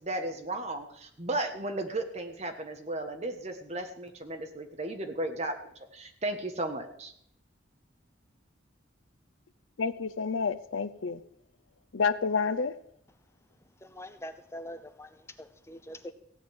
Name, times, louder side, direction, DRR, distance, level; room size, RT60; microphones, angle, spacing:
voice 1, 0.0-7.1, right 2 dB, 35° right, 5 dB, 1.5 m, -35 dB
voice 2, 9.8-11.2 11.9-12.8, left 5 dB, 85° left, 14 dB, 0.7 m, -29 dB
voice 3, 13.8-16.1, equal, 15° left, 9 dB, 0.7 m, -44 dB
16.0 x 5.4 x 9.6 m, 0.70 s
head